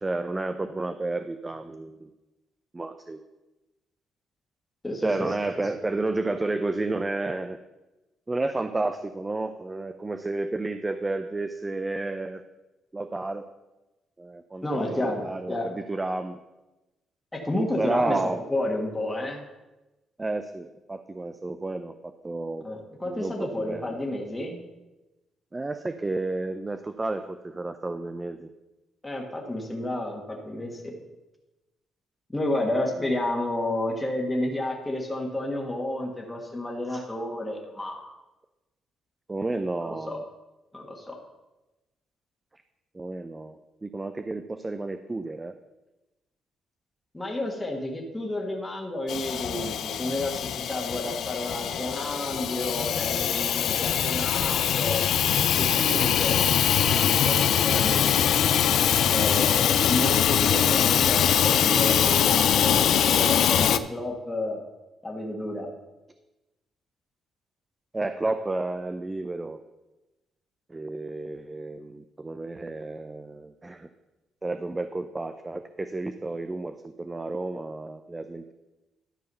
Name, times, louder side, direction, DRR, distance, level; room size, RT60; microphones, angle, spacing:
voice 1, 0.0-2.1 2.7-3.2 5.0-7.6 8.3-12.4 12.9-13.5 14.2-16.4 17.8-18.4 20.2-22.7 23.1-24.0 25.5-28.5 33.0-33.1 36.9-37.0 39.3-40.2 42.9-45.5 67.9-69.6 70.7-73.9 74.4-78.5, right 2 dB, 20° right, 9 dB, 0.5 m, -31 dB
voice 2, 4.8-5.6 14.6-15.7 17.3-18.2 18.5-19.4 22.6-24.6 29.0-31.0 32.3-38.0 39.8-40.2 40.7-41.2 47.1-55.1 55.5-56.4 56.7-58.3 59.1-64.6 65.0-65.7, left 1 dB, 15° left, 0 dB, 1.5 m, -31 dB
Hiss / Toilet flush / Trickle dribble, 49.1-63.8, left 9 dB, 70° left, 0.4 m, -23 dB
12.5 x 4.7 x 5.5 m, 1.0 s
cardioid pair, 90°, 0 cm